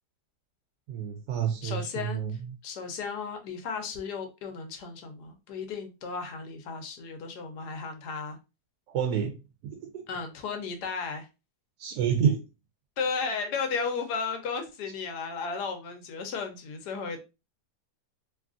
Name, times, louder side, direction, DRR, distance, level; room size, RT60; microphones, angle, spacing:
voice 1, 0.9-2.5 8.9-9.4 9.6-10.0 11.8-12.4, right 8 dB, 85° right, 1.1 m, -29 dB
voice 2, 1.6-2.2 2.6-8.4 10.1-11.3 13.0-17.2, left 5 dB, 85° left, 1.3 m, -34 dB
3.1 x 2.4 x 2.4 m
omnidirectional pair, 1.7 m